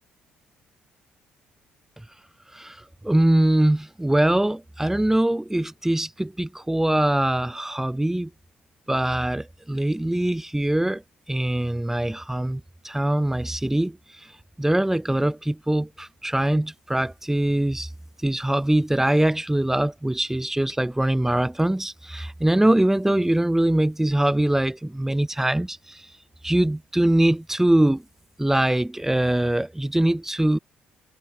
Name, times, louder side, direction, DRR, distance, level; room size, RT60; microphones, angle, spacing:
voice 1, 3.0-8.3 8.9-11.0 11.3-14.0 14.6-17.9 18.2-26.0 26.4-28.0 28.4-30.6, right 1 dB, 10° right, 1.4 m, -22 dB
hypercardioid pair, 50°, 4 cm